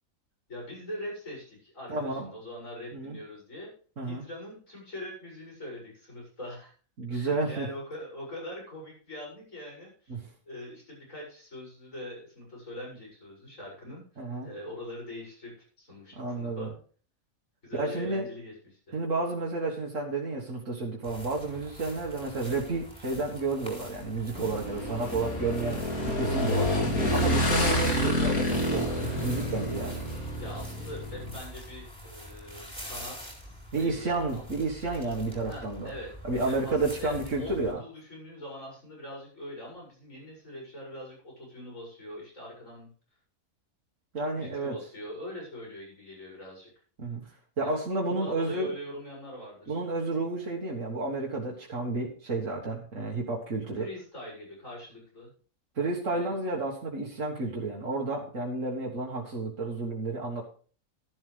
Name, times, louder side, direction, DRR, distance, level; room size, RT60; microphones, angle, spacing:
voice 1, 0.5-3.7 4.0-6.7 7.1-16.7 17.6-19.0 30.4-34.5 35.5-36.1 36.4-42.9 44.4-46.7 47.6-49.8 53.8-55.3 56.1-56.3, equal, 65° left, -3 dB, 7.7 m, -43 dB
voice 2, 1.9-2.3 2.9-3.2 4.0-4.3 7.0-7.7 10.1-10.2 14.2-14.5 16.2-16.7 17.8-18.3 18.9-26.8 27.1-28.9 29.2-30.1 33.7-35.9 36.2-37.8 44.1-44.8 47.0-47.2 47.6-48.7 49.7-53.9 55.8-60.5, right 3 dB, 65° right, -3 dB, 2.0 m, -31 dB
sound 1, 21.0-37.7, equal, 5° left, 4.1 m, -45 dB
Motorcycle / Engine, 24.4-31.4, equal, 90° left, 3.3 m, -28 dB
13.0 x 11.0 x 3.4 m, 0.42 s
omnidirectional pair, 1.5 m